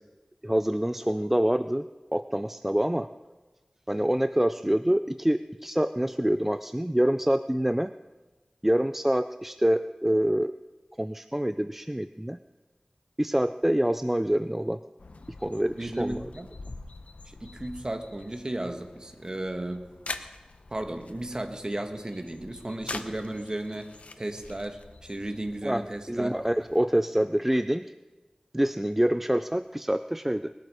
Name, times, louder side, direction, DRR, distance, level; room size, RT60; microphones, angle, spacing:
voice 1, 0.4-1.9 2.1-3.1 3.9-7.9 8.6-10.5 11.0-12.4 13.2-14.8 15.4-16.3 25.6-27.9 28.5-30.5, right 1 dB, 10° right, 11 dB, 0.4 m, -26 dB
sound 1, 15.0-26.8, left 3 dB, 80° left, 0.8 m, -45 dB
voice 2, 15.7-16.5 17.3-19.9 20.7-26.4, right 1 dB, 35° right, 6 dB, 1.5 m, -34 dB
20.5 x 12.0 x 4.9 m, 1.2 s
wide cardioid pair, 65°, 2 cm